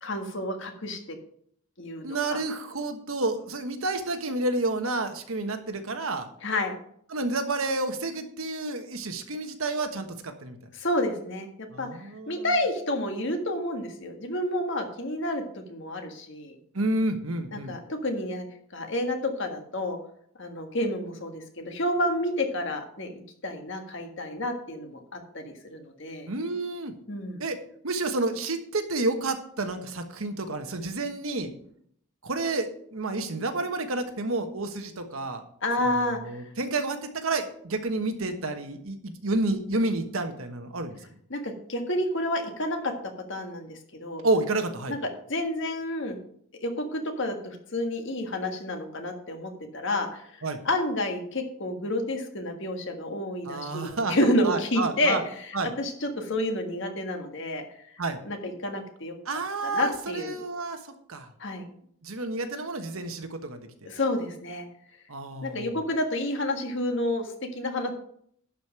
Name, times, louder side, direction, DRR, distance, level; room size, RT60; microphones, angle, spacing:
voice 1, 0.0-1.0 1.8-2.4 6.4-6.7 10.7-11.5 11.8-15.4 15.7-16.6 17.5-18.4 18.7-20.0 20.4-26.3 27.1-27.4 35.6-36.4 41.3-42.9 43.3-44.2 44.9-45.0 45.3-46.2 46.6-50.3 50.6-55.5 55.8-57.6 58.2-59.1 59.6-60.4 61.4-61.7 63.8-64.7 65.4-67.9, left 1 dB, 55° left, 4 dB, 1.6 m, -30 dB
voice 2, 2.0-6.3 7.1-10.6 11.7-12.5 16.7-17.7 26.3-26.9 27.4-27.6 27.8-31.5 32.2-35.4 35.8-41.0 44.2-45.0 50.4-50.6 53.4-54.2 54.4-55.2 55.5-55.7 58.0-58.2 59.2-61.3 62.0-63.9 65.1-65.8, right 2 dB, 70° right, 7 dB, 1.3 m, -30 dB
11.5 x 5.2 x 6.2 m, 0.65 s
head